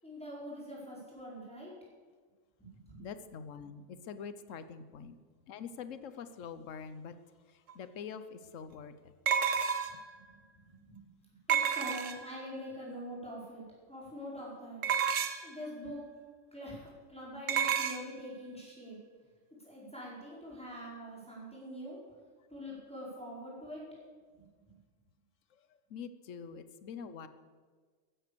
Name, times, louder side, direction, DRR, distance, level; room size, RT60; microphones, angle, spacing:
voice 1, 0.0-1.7 2.6-3.0 9.9-10.0 10.2-11.1 11.5-13.6 13.9-14.8 15.4-16.0 16.5-19.0 19.6-22.0 22.5-23.8 24.3-24.8, equal, 5° left, -6 dB, 5.1 m, -44 dB
voice 2, 3.0-5.2 5.5-7.1 7.7-8.9 25.9-27.3, left 6 dB, 65° left, 12 dB, 1.2 m, -44 dB
sound 1, 7.7-7.8 9.3-10.1 11.5-12.4 14.8-15.5 17.5-18.0, right 8 dB, 65° right, 1.2 m, -30 dB
15.0 x 10.5 x 6.9 m, 1.5 s
omnidirectional pair, 1.4 m